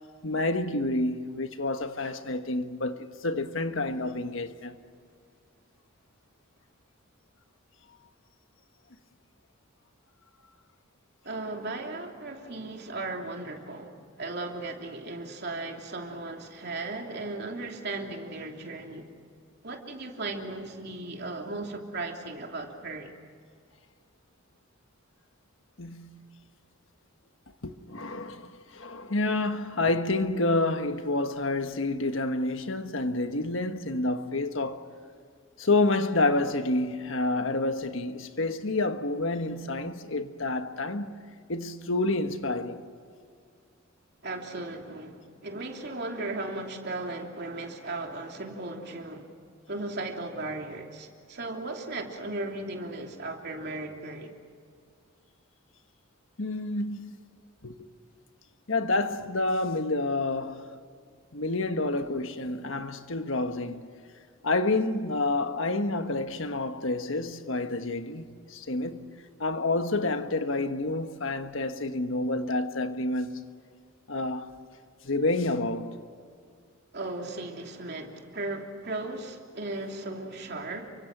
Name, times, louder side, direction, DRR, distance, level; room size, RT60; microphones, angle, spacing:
voice 1, 0.2-4.8 25.8-26.3 27.6-34.8 35.6-41.1 41.5-42.8 56.4-57.2 57.6-57.9 58.7-60.7 61.3-63.9 64.4-69.1 69.4-73.4 74.1-74.5 75.0-76.0, left 2 dB, 70° left, 1.4 m, -29 dB
voice 2, 11.2-19.1 19.6-23.1 44.2-49.3 49.7-54.3 76.9-80.9, right 2 dB, 55° right, 3.0 m, -36 dB
29.5 x 24.5 x 6.1 m
head